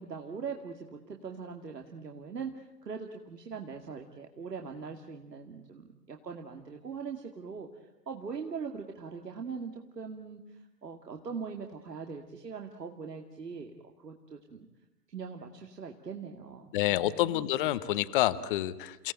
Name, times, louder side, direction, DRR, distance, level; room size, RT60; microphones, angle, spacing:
voice 1, 0.0-7.7 8.1-14.7 15.1-17.4, right 5 dB, 75° right, 3 dB, 2.5 m, -41 dB
voice 2, 16.7-19.1, left 14 dB, 30° left, 15 dB, 1.0 m, -28 dB
29.5 x 17.5 x 9.0 m, 0.99 s
figure-of-eight pair, 125°, 48 cm